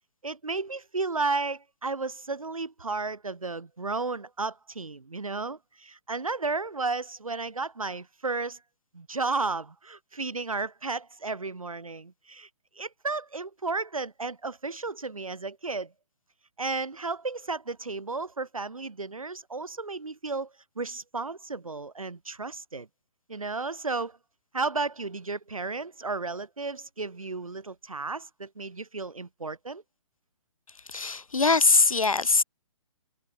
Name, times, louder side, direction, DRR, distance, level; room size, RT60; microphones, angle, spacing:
voice 1, 0.2-8.6 8.9-12.5 12.8-15.9 16.6-22.9 23.3-24.2 24.5-29.8, right 3 dB, 85° right, 0.8 m, -33 dB
voice 2, 30.9-32.4, left 4 dB, 85° left, 0.9 m, -22 dB
figure-of-eight pair, 135°, 17 cm